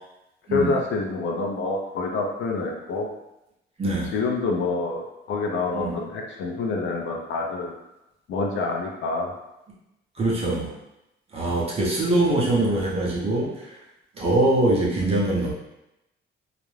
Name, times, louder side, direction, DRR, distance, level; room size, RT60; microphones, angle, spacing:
voice 1, 0.5-3.1 4.1-7.7 8.3-9.3, left 3 dB, 65° left, 0 dB, 0.5 m, -27 dB
voice 2, 3.8-4.1 5.7-5.9 10.2-10.7 11.3-13.8 14.1-15.5, right 2 dB, 30° right, -4 dB, 0.6 m, -23 dB
2.4 x 2.1 x 3.1 m, 0.90 s
cardioid pair, 175°, 21 cm